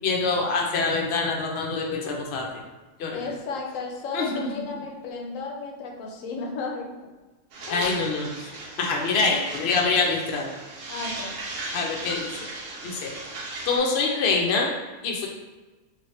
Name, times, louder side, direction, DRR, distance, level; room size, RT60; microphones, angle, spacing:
voice 1, 0.0-2.5 3.0-3.2 4.1-4.3 7.7-8.5 8.8-10.5 11.7-12.5 12.8-13.1 13.6-14.8 15.0-15.3, left 4 dB, 65° left, 0 dB, 0.7 m, -25 dB
voice 2, 3.1-6.9 7.7-8.0 10.9-11.3, left 4 dB, 85° left, 0 dB, 1.0 m, -34 dB
sound 1, 7.5-13.8, right 2 dB, 90° right, 1.0 m, -37 dB
2.8 x 2.7 x 3.1 m, 1.2 s
omnidirectional pair, 1.3 m